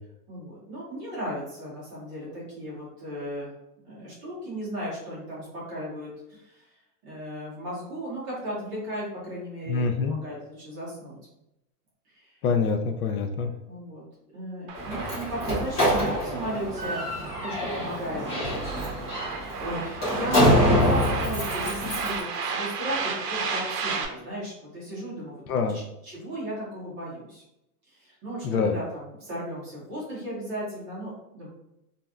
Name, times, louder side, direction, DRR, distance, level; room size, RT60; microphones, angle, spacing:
voice 1, 0.3-3.5 3.8-6.6 7.0-11.2 12.1-12.3 13.7-14.0 14.3-17.0 17.4-18.2 19.5-25.4 25.7-27.4 27.9-31.5, equal, 20° right, -8 dB, 0.8 m, -35 dB
voice 2, 9.7-10.2 12.4-13.5 25.5-25.8 28.4-28.7, left 5 dB, 70° left, 6 dB, 0.5 m, -25 dB
Slam, 14.7-22.2, equal, 20° left, 0.8 m, -26 dB
sound 1, 14.7-24.1, right 5 dB, 80° right, 0.7 m, -34 dB
3.1 x 2.6 x 2.2 m, 0.85 s
supercardioid pair, 180°, 47 cm